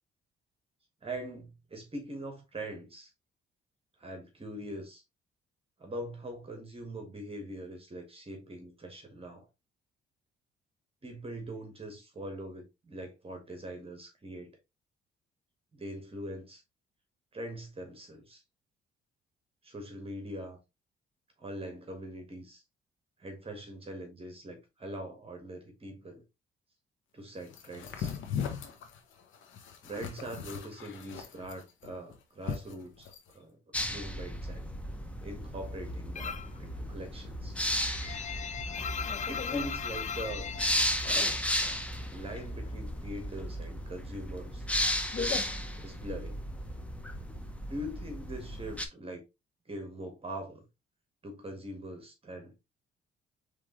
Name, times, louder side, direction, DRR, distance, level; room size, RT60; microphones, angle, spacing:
voice 1, 1.0-3.1 4.0-5.0 5.8-9.5 11.0-14.5 15.7-16.6 17.3-18.4 19.6-20.6 21.4-22.6 23.2-26.2 27.1-28.1 29.8-33.6 33.9-34.6 35.2-37.6 39.2-40.5 42.1-44.7 45.8-46.4 47.7-49.2 49.6-50.6 51.2-52.5, right 1 dB, 30° right, 1.6 m, -42 dB
sound 1, 27.5-33.3, left 7 dB, 80° left, 1.1 m, -39 dB
sound 2, 33.7-48.9, equal, 5° left, 0.9 m, -35 dB
sound 3, 36.2-36.6 36.9-41.8 42.1-43.1 43.4-46.2, left 7 dB, 35° left, 0.4 m, -38 dB
5.0 x 3.4 x 3.0 m
cardioid pair, 90°, 20 cm